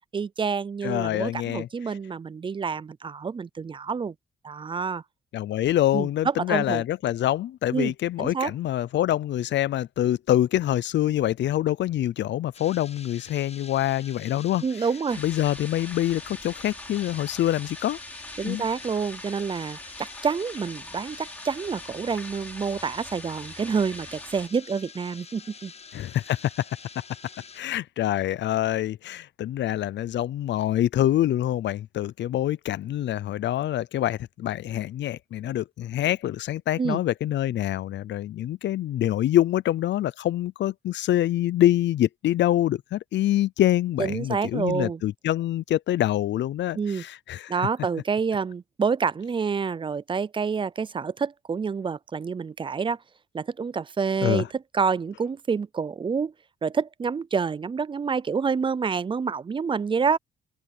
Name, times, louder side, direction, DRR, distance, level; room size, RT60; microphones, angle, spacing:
voice 1, 0.1-4.1 4.4-5.0 5.9-6.8 7.7-7.9 8.2-8.5 14.6-15.2 18.4-25.7 36.8-37.0 44.0-45.0 46.7-47.0 47.5-53.0 53.3-56.3 56.6-60.2, right 5 dB, 25° right, 0.5 m, -28 dB
voice 2, 0.8-1.7 5.3-14.6 15.2-18.0 18.4-18.6 25.9-26.7 27.5-47.5 54.2-54.5, left 13 dB, 65° left, 0.6 m, -25 dB
sound 1, 12.5-27.6, left 5 dB, 30° left, 1.2 m, -47 dB
sound 2, 15.1-24.5, left 1 dB, 5° left, 6.2 m, -42 dB
open air
cardioid pair, 90°, 20 cm